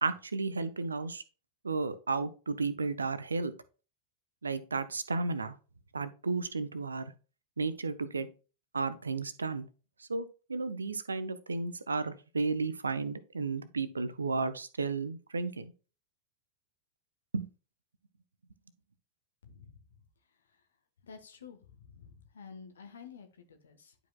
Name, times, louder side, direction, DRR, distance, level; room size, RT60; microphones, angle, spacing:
voice 1, 0.0-1.2 1.6-3.5 4.4-5.6 5.9-7.1 7.6-8.3 8.7-9.7 10.1-15.7 17.3-17.5, right 4 dB, 75° right, 14 dB, 0.6 m, -33 dB
voice 2, 19.4-19.8 21.0-23.9, left 6 dB, 70° left, 7 dB, 1.2 m, -51 dB
11.0 x 4.9 x 2.3 m, 0.34 s
figure-of-eight pair, 90°, 0 cm